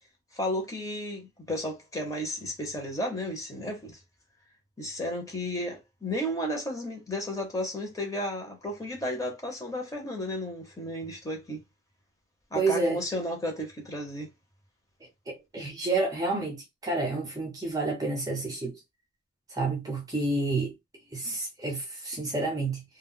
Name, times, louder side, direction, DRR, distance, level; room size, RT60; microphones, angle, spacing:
voice 1, 0.3-4.0 4.8-11.6 12.5-14.3, left 1 dB, 15° left, 0.8 m, -33 dB
voice 2, 12.5-13.0 15.3-18.8 19.5-20.7 21.1-22.8, right 3 dB, 15° right, 0.6 m, -29 dB
2.3 x 2.0 x 3.6 m
head